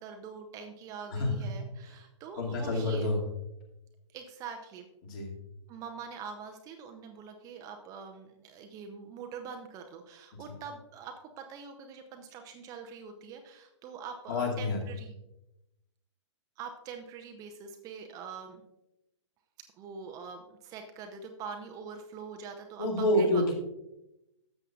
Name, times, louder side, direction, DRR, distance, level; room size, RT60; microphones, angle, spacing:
voice 1, 0.0-3.1 4.1-4.9 5.7-15.2 16.6-18.6 19.6-23.4, right 6 dB, 20° right, 5 dB, 0.7 m, -44 dB
voice 2, 2.4-3.2 5.1-5.3 14.3-14.8 22.8-23.5, left 1 dB, 40° left, -1 dB, 2.4 m, -28 dB
13.0 x 7.7 x 2.4 m, 0.89 s
figure-of-eight pair, 115°, 16 cm